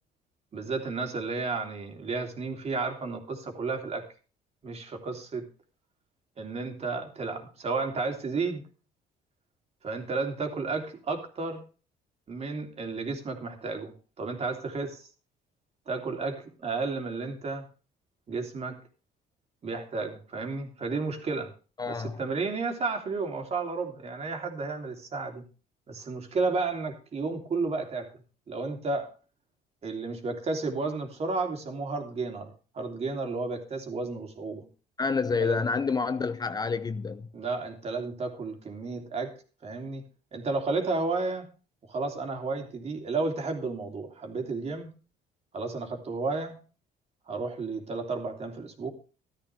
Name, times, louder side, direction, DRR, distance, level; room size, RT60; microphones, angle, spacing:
voice 1, 0.5-4.0 4.6-5.4 6.4-8.6 9.8-11.6 12.3-15.1 15.9-17.6 18.3-18.8 19.6-21.5 21.8-25.4 25.9-28.1 28.5-29.1 29.8-34.6 35.4-35.6 37.3-39.3 39.6-40.0 40.3-41.5 41.9-44.9 45.5-46.6 47.3-48.9, right 3 dB, 40° right, 3.2 m, -32 dB
voice 2, 21.8-22.2 35.0-37.3, left 4 dB, 25° left, 0.6 m, -28 dB
13.5 x 13.0 x 3.5 m
cardioid pair, 110°, 17 cm